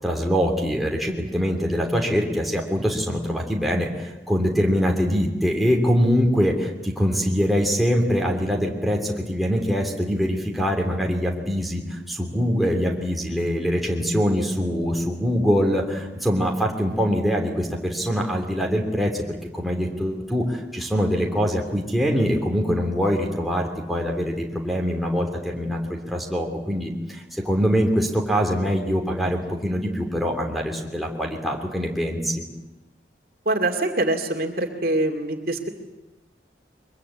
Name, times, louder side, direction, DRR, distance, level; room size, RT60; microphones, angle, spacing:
voice 1, 0.0-32.4, equal, ahead, 0 dB, 3.1 m, -23 dB
voice 2, 33.5-35.7, right 2 dB, 55° right, 4 dB, 2.4 m, -24 dB
23.0 x 22.5 x 8.6 m, 1.0 s
head